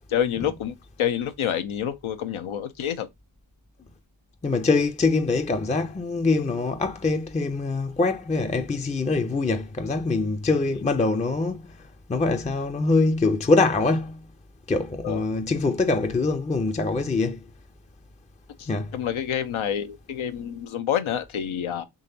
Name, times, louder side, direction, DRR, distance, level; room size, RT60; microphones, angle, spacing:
voice 1, 0.1-3.1 15.0-15.2 18.6-21.8, left 9 dB, 75° left, 0.8 m, -28 dB
voice 2, 4.4-11.6 12.1-14.3 14.7-17.4 18.7-18.9, left 3 dB, 15° left, 0.5 m, -24 dB
3.8 x 3.0 x 2.6 m
supercardioid pair, 40°, 48 cm